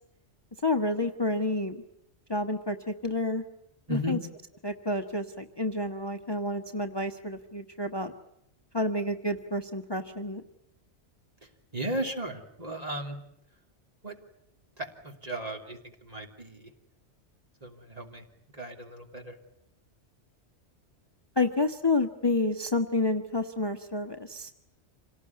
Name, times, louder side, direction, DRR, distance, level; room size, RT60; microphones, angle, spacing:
voice 1, 0.6-1.8 2.3-3.4 3.9-4.2 4.6-8.1 8.7-10.4 21.4-24.5, left 2 dB, 20° left, 6 dB, 1.1 m, -29 dB
voice 2, 11.4-13.2 14.0-14.2 14.8-16.7 17.6-18.2 18.5-19.4, right 1 dB, 35° right, 3 dB, 3.2 m, -36 dB
27.0 x 18.5 x 9.7 m, 0.78 s
omnidirectional pair, 1.2 m